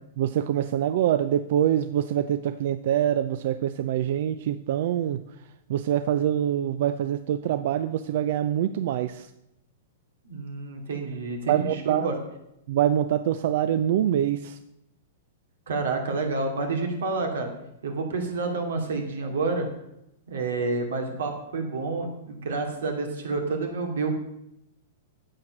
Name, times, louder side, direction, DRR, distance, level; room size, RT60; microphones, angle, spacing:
voice 1, 0.2-5.2 5.7-9.3 11.5-12.1 12.7-14.6, right 10 dB, 50° right, 11 dB, 0.4 m, -25 dB
voice 2, 10.2-12.1 15.7-17.5 17.8-19.7 20.3-24.1, right 3 dB, 90° right, 3 dB, 2.5 m, -29 dB
8.9 x 7.8 x 5.9 m, 0.82 s
supercardioid pair, 165°, 0 cm